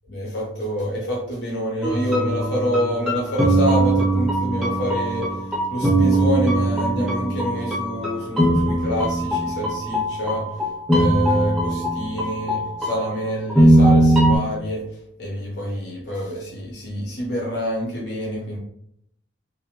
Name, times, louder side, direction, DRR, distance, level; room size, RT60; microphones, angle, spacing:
voice 1, 0.1-5.3 5.7-10.5 10.9-14.8 15.2-18.6, equal, 65° left, -3 dB, 0.6 m, -26 dB
sound 1, 1.8-14.4, right 1 dB, ahead, 0.6 m, -20 dB
2.5 x 2.1 x 2.8 m, 0.71 s
head